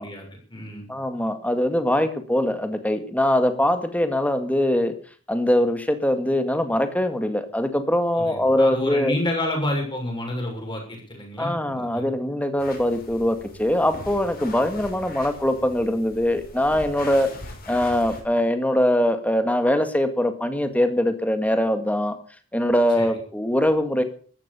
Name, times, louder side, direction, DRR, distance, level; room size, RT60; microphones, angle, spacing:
voice 1, 0.0-0.8 8.1-12.1 23.0-23.1, left 1 dB, 25° left, 1 dB, 6.3 m, -29 dB
voice 2, 0.9-4.9 5.3-9.2 11.4-17.3 17.7-22.2 22.5-24.0, left 1 dB, 5° left, 8 dB, 1.9 m, -22 dB
sound 1, 12.6-18.2, left 2 dB, 45° left, 6.1 m, -41 dB
14.5 x 12.0 x 6.9 m, 0.44 s
head